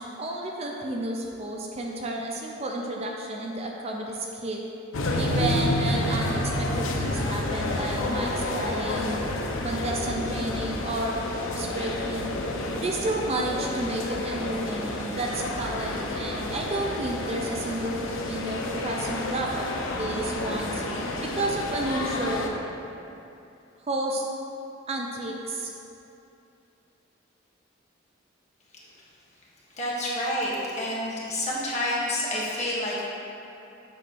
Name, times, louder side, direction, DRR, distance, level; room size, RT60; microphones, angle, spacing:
voice 1, 0.0-4.6 5.2-9.1 9.6-12.3 12.8-19.7 19.9-20.8 21.3-22.5 23.9-24.2 24.9-25.7, right 1 dB, 30° right, 0 dB, 0.4 m, -31 dB
sound 1, 4.9-22.5, left 1 dB, 80° left, 0.7 m, -30 dB
voice 2, 29.8-33.1, left 1 dB, 35° left, -6 dB, 1.4 m, -28 dB
7.7 x 3.1 x 6.0 m, 2.8 s
head